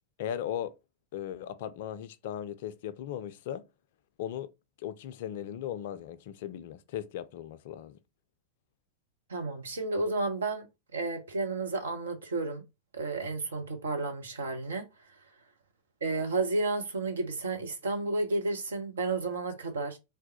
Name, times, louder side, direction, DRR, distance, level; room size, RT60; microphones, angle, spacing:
voice 1, 0.2-0.7 1.1-3.6 4.2-4.5 4.8-8.0, left 10 dB, 55° left, 0.4 m, -37 dB
voice 2, 9.3-10.7 10.9-12.6 12.9-14.9 16.0-20.0, right 3 dB, 70° right, 0.8 m, -32 dB
3.4 x 2.2 x 4.0 m
figure-of-eight pair, 90°, 0 cm